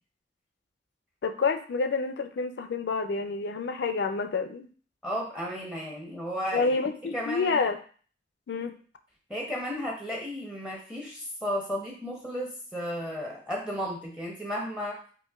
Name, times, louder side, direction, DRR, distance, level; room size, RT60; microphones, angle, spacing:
voice 1, 1.2-4.7 6.5-7.8 8.5-8.8, left 4 dB, 70° left, 8 dB, 0.4 m, -28 dB
voice 2, 5.0-6.7 7.1-7.6 9.3-15.0, equal, 5° right, -1 dB, 0.6 m, -34 dB
5.1 x 2.1 x 2.3 m, 0.42 s
head